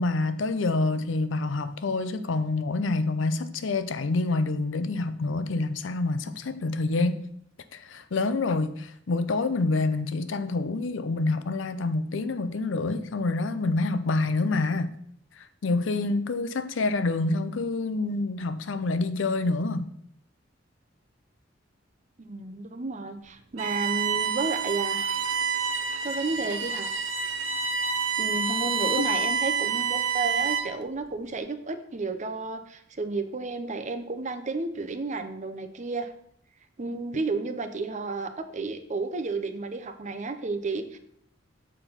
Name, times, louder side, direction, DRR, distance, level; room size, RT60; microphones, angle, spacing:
voice 1, 0.0-7.2 7.7-15.0 15.4-19.9, left 3 dB, 75° left, 0.6 m, -27 dB
voice 2, 22.2-25.1 26.0-27.0 28.2-36.1 36.8-41.0, right 3 dB, 40° right, 0.7 m, -32 dB
Bowed string instrument, 23.6-30.8, right 5 dB, 70° right, 0.8 m, -28 dB
6.9 x 4.4 x 5.6 m
head